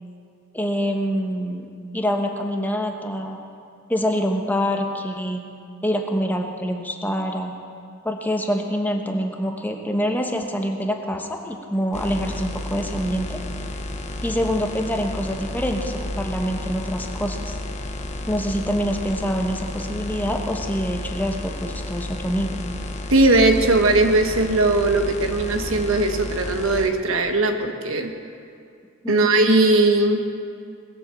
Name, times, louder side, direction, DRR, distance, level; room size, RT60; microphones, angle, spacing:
voice 1, 0.5-3.4 3.9-5.4 5.8-7.5 8.0-13.4 14.2-17.6 18.3-22.6 29.0-29.3, equal, 10° left, 3 dB, 1.1 m, -25 dB
sound 1, 11.9-26.9, left 1 dB, 35° left, 1.0 m, -32 dB
voice 2, 23.1-28.1 29.1-30.2, right 2 dB, 85° right, 5 dB, 1.2 m, -19 dB
19.5 x 7.5 x 7.5 m, 2.3 s
head